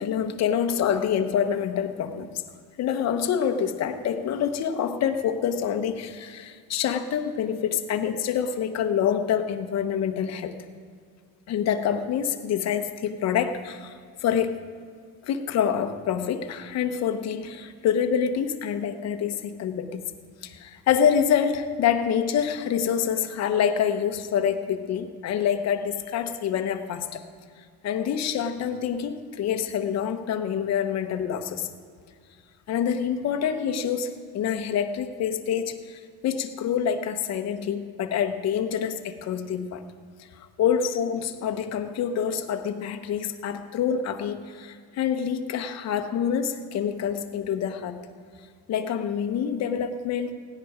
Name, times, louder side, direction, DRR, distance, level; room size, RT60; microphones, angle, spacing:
voice 1, 0.0-2.3 2.8-10.6 11.5-14.7 15.2-20.1 20.4-27.2 27.8-31.7 32.7-39.8 40.4-48.0 48.7-50.3, left 8 dB, 40° left, 6 dB, 0.9 m, -26 dB
16.5 x 10.5 x 4.9 m, 2.1 s
cardioid pair, 145°, 40 cm